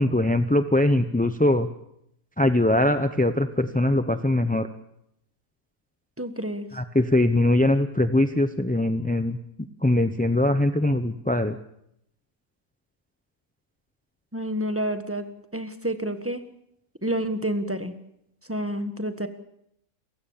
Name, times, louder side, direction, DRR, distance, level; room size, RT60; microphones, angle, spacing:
voice 1, 0.0-1.7 2.4-4.7 6.7-9.4 9.8-11.6, left 1 dB, 10° left, 9 dB, 0.5 m, -22 dB
voice 2, 6.2-6.7 14.3-16.4 17.0-17.9 18.5-19.3, right 1 dB, 10° right, 9 dB, 1.4 m, -29 dB
30.0 x 16.0 x 7.3 m, 0.78 s
omnidirectional pair, 1.5 m